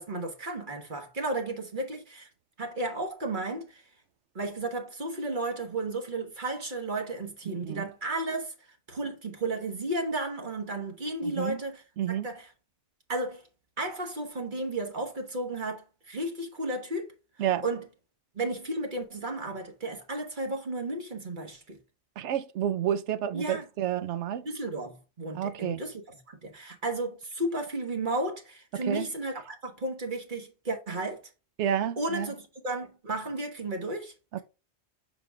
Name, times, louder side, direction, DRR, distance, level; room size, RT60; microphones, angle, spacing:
voice 1, 0.0-2.3 2.6-3.8 4.3-12.5 13.1-13.4 13.8-17.9 18.3-21.8 23.3-23.6 24.4-31.2 32.0-34.4, right 2 dB, 45° right, 1.4 m, -33 dB
voice 2, 7.5-7.8 11.2-11.6 12.0-12.3 17.4-17.6 22.2-24.4 25.3-25.8 28.9-29.1 31.6-32.3, right 10 dB, 80° right, 0.9 m, -30 dB
6.7 x 4.1 x 3.5 m
omnidirectional pair, 1.2 m